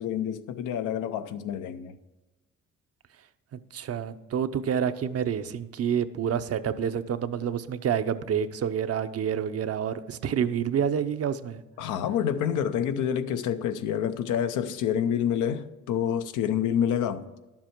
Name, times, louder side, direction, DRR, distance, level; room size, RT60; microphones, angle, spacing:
voice 1, 0.0-2.0 11.8-17.2, left 9 dB, 90° left, 0.7 m, -28 dB
voice 2, 3.5-11.6, right 8 dB, 55° right, 0.7 m, -28 dB
11.0 x 7.4 x 4.5 m
cardioid pair, 90°, 30 cm